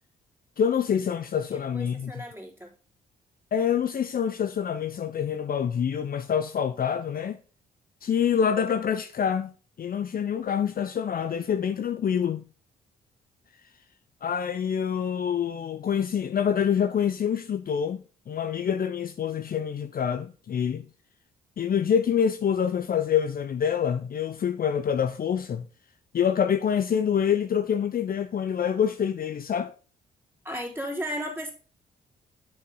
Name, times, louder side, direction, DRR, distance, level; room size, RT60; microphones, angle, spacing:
voice 1, 0.6-2.2 3.5-7.4 8.0-9.5 9.8-12.4 14.2-20.8 21.6-25.7 26.1-29.7, left 8 dB, 45° left, 0.6 m, -26 dB
voice 2, 1.5-2.7 30.4-31.5, equal, 10° right, 3.5 m, -35 dB
7.3 x 5.5 x 3.9 m
hypercardioid pair, 45°, 21 cm